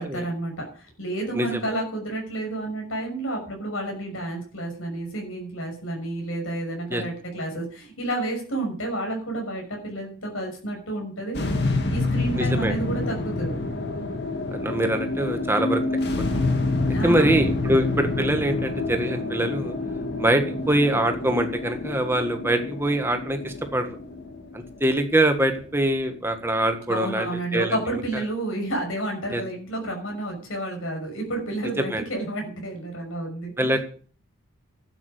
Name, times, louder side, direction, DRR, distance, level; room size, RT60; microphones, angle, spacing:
voice 1, 0.0-11.4 11.9-13.6 16.9-17.7 26.9-33.8, right 1 dB, 70° left, 2 dB, 6.2 m, -30 dB
sound 1, 11.3-27.7, left 2 dB, 50° left, 2.1 m, -28 dB
voice 2, 12.3-12.8 14.5-15.8 16.3-16.4 17.0-19.7 20.2-23.9 24.5-27.8 28.1-28.2 29.3-29.4 31.8-32.0 33.6-33.8, right 1 dB, 10° right, 6 dB, 1.6 m, -24 dB
12.0 x 8.5 x 8.4 m, 0.42 s
head